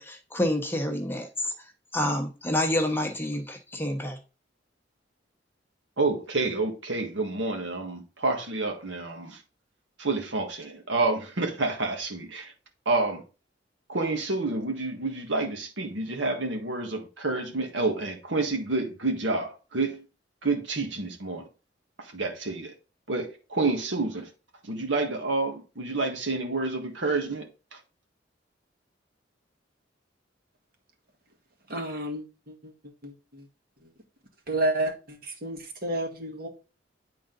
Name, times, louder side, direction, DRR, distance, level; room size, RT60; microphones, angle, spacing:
voice 1, 0.0-1.5 1.9-4.2, left 1 dB, 10° left, 1.0 m, -28 dB
voice 2, 6.0-9.4 10.0-12.5 12.8-13.2 13.9-20.0 20.4-21.5 22.0-22.7 23.1-24.3 24.6-27.5 27.7-27.8, right 3 dB, 75° right, 1.6 m, -29 dB
voice 3, 31.7-33.5 33.8-33.9 34.5-36.5, right 1 dB, 55° right, 1.7 m, -31 dB
9.0 x 3.9 x 3.9 m
head